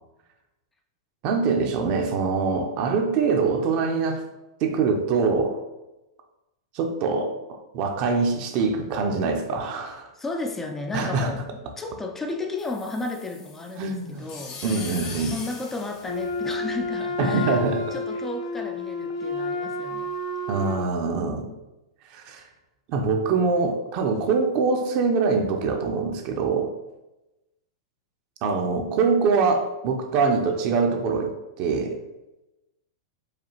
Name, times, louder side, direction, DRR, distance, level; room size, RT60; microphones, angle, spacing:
voice 1, 1.2-4.2 4.6-5.6 6.7-10.1 10.9-11.3 13.8-14.3 14.6-15.3 17.2-17.8 20.5-21.5 22.1-22.4 22.9-26.7 28.4-31.3 31.6-31.9, right 4 dB, 45° right, 4 dB, 0.6 m, -24 dB
voice 2, 10.2-14.7 15.3-17.6 17.9-20.1, left 2 dB, 15° left, 3 dB, 0.4 m, -33 dB
sound 1, 12.6-16.9, left 4 dB, 45° left, 0.9 m, -40 dB
Wind instrument woodwind instrument, 16.0-20.9, left 2 dB, 80° left, 0.7 m, -30 dB
4.8 x 2.4 x 2.9 m, 0.97 s
hypercardioid pair, 105°, 2 cm